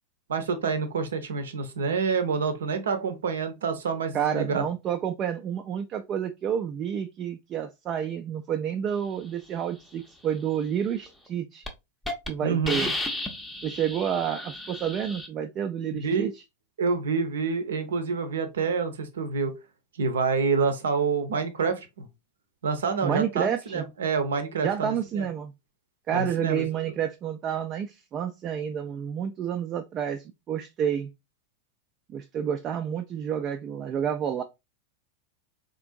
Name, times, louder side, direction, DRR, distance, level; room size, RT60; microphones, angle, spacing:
voice 1, 0.3-4.6 12.4-12.9 15.9-16.3 16.8-19.5 20.0-22.1 22.6-25.3 26.1-26.6, right 5 dB, 65° right, 0.6 m, -27 dB
voice 2, 4.1-11.7 12.3-12.9 13.6-16.3 23.0-23.8 24.6-25.5 26.1-31.1 32.1-34.4, right 8 dB, 30° right, 0.3 m, -29 dB
Hiss, 11.1-11.3 11.7-11.8 12.1-12.3 12.7-15.3, left 1 dB, 5° left, 0.6 m, -33 dB
3.6 x 2.5 x 2.5 m
figure-of-eight pair, 90°, 0 cm